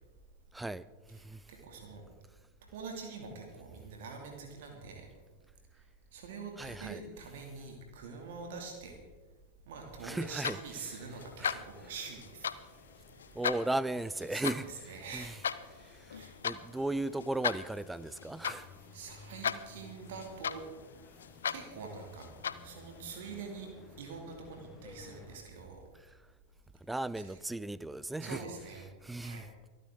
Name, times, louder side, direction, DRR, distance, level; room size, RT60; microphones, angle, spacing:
voice 1, 0.5-1.5 6.6-7.0 10.0-10.6 11.4-11.6 13.3-15.3 15.7-18.8 26.0-26.1 26.8-28.4 29.0-29.4, right 2 dB, 5° right, 0.5 m, -37 dB
voice 2, 1.5-2.0 2.7-5.0 6.1-9.0 9.7-12.5 13.1-13.4 14.3-16.4 18.9-20.6 21.5-22.2 22.6-23.7 24.0-25.8 27.2-27.3 28.2-28.9 29.2-29.4, right 4 dB, 55° right, 2.6 m, -45 dB
sound 1, 10.2-23.0, left 7 dB, 65° left, 0.6 m, -39 dB
sound 2, 11.7-25.4, left 4 dB, 25° left, 1.9 m, -56 dB
25.0 x 9.3 x 3.9 m
figure-of-eight pair, 90°, 0 cm